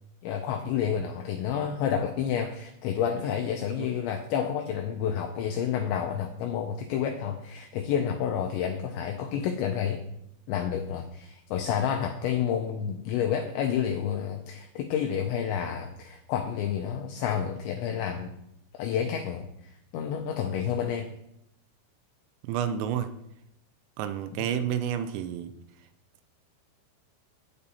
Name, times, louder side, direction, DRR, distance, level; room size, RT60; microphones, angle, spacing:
voice 1, 0.2-10.0 10.5-18.3 18.7-21.1 24.3-24.5, left 8 dB, 85° left, 4 dB, 2.5 m, -30 dB
voice 2, 22.4-23.1 24.0-25.5, right 9 dB, 85° right, 10 dB, 3.3 m, -30 dB
8.7 x 8.6 x 4.2 m, 0.80 s
omnidirectional pair, 5.9 m